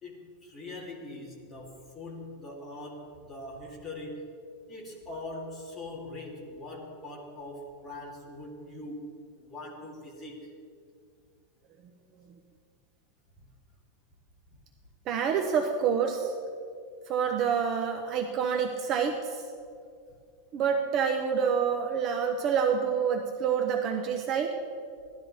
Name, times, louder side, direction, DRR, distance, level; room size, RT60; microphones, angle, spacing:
voice 1, 0.0-4.3 4.7-9.1 9.4-10.5 13.4-13.5, left 2 dB, 10° left, -3 dB, 2.1 m, -42 dB
voice 2, 15.1-16.3 17.1-19.4 20.5-24.5, right 7 dB, 30° right, 4 dB, 0.7 m, -27 dB
17.0 x 12.5 x 4.2 m, 2.3 s
supercardioid pair, 170°, 0 cm